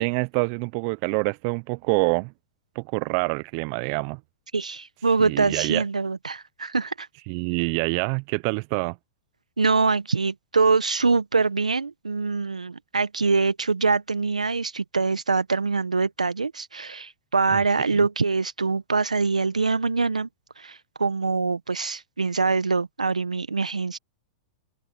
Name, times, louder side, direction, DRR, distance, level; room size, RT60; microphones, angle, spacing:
voice 1, 0.0-2.3 2.7-4.2 5.2-5.8 7.3-9.0 17.5-17.6 17.9-18.0, right 32 dB, 45° right, 0.8 m, -26 dB
voice 2, 4.5-7.1 9.6-20.3 20.6-24.0, right 4 dB, 90° right, 1.5 m, -24 dB
open air
hypercardioid pair, 105°, 4 cm